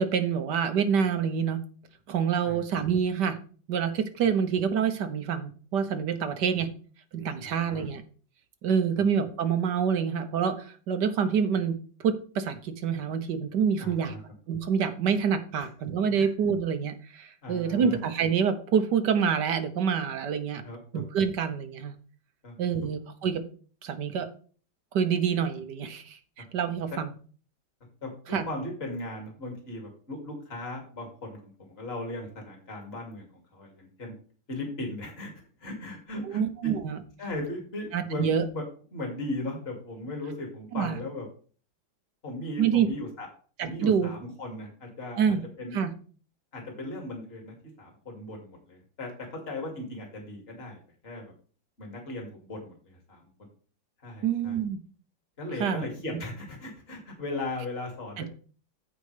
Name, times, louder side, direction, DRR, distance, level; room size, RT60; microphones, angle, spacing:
voice 1, 0.0-1.6 2.1-3.4 3.7-6.7 7.1-8.0 8.6-11.8 12.0-14.2 14.5-20.6 20.9-21.9 22.6-23.4 23.8-24.3 24.9-26.2 26.5-27.1 28.3-28.4 36.2-37.0 37.9-38.4 40.7-41.0 42.6-42.9 43.6-44.1 45.2-45.4 45.7-45.9 54.2-54.8 55.6-55.8 58.2-58.3, right 7 dB, 65° right, 9 dB, 1.5 m, -27 dB
voice 2, 6.3-6.6 7.4-7.9 9.0-9.1 13.8-14.2 15.6-15.7 16.1-16.3 17.4-18.0 20.6-21.0 22.4-22.5 26.9-27.0 28.0-34.1 34.5-35.3 35.6-36.7 37.2-38.6 38.9-41.3 42.2-43.3 43.6-45.8 46.5-50.8 51.0-51.3 51.8-53.2 54.0-54.6 55.4-58.3, left 2 dB, 30° left, 1 dB, 2.6 m, -37 dB
15.0 x 5.0 x 3.3 m, 0.42 s
omnidirectional pair, 2.1 m